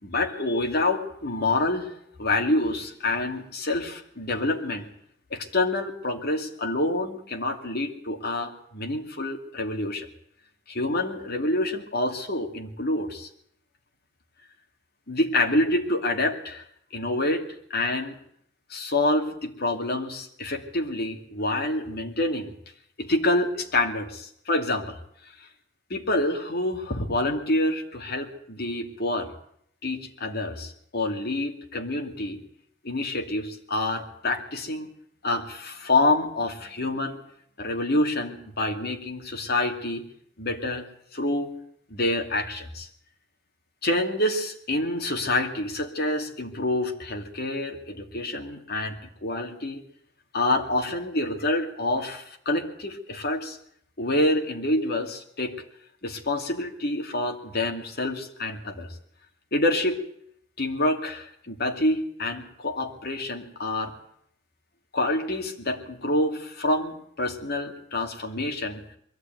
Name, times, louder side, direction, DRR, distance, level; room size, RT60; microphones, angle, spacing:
voice 1, 0.0-1.9 2.2-4.8 5.3-10.1 10.7-13.3 15.1-16.6 16.9-18.1 18.7-22.5 23.0-25.0 25.9-29.3 29.8-32.4 32.8-34.9 35.2-37.2 37.6-40.0 40.4-40.8 41.1-41.6 41.9-42.9 43.8-49.0 49.2-49.8 50.3-53.6 54.0-55.5 56.0-58.9 59.5-60.0 60.6-63.9 64.9-68.8, left 2 dB, 55° left, 4 dB, 2.6 m, -27 dB
22.0 x 14.5 x 9.3 m, 0.69 s
head